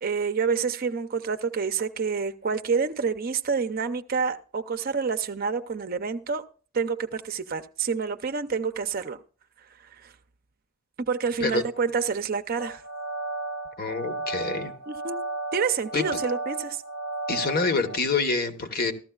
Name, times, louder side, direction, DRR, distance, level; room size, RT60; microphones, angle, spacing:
voice 1, 0.0-6.4 6.7-9.2 9.9-10.1 11.1-12.8 14.9-15.2 15.5-16.8, right 5 dB, 45° right, 0.5 m, -28 dB
sound 1, 12.6-18.0, right 2 dB, 70° left, 1.3 m, -34 dB
voice 2, 13.8-14.7 15.9-16.2 17.3-18.9, left 4 dB, 50° left, 1.1 m, -26 dB
15.0 x 13.0 x 2.3 m
head